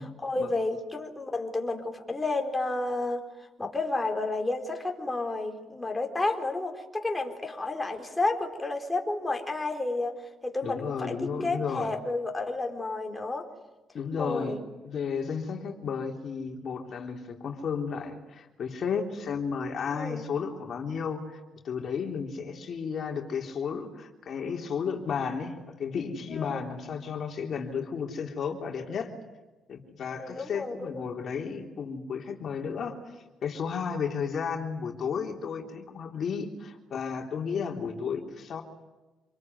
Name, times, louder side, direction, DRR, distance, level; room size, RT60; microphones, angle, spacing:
voice 1, 0.0-3.2 3.6-10.1 10.4-11.1 11.4-13.4 14.2-14.6 19.9-20.3 26.3-26.6 30.2-31.0, left 2 dB, 15° left, 3 dB, 4.4 m, -31 dB
voice 2, 10.6-11.9 13.9-21.4 21.6-29.1 29.7-38.6, left 6 dB, 55° left, 2 dB, 3.6 m, -33 dB
27.5 x 22.0 x 9.5 m, 1.1 s
cardioid pair, 90°, 0 cm